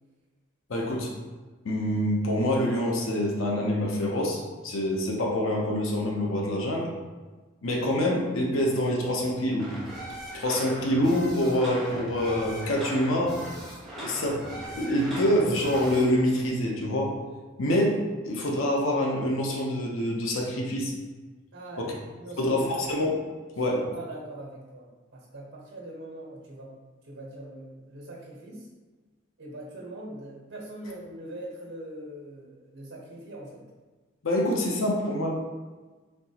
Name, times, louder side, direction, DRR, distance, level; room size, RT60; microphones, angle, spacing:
voice 1, 0.7-1.1 1.6-6.9 7.6-9.7 10.3-13.4 14.0-14.4 14.7-17.1 17.6-18.0 18.2-20.9 21.8-21.9 22.4-23.2 23.6-23.8 34.2-35.3, left 1 dB, 85° left, -1 dB, 0.8 m, -26 dB
sound 1, 9.6-16.0, right 1 dB, ahead, 1.1 m, -39 dB
voice 2, 21.5-22.6 23.7-26.7 27.0-28.7 29.4-33.6, right 1 dB, 80° right, -3 dB, 1.2 m, -42 dB
4.4 x 3.9 x 2.9 m, 1.3 s
head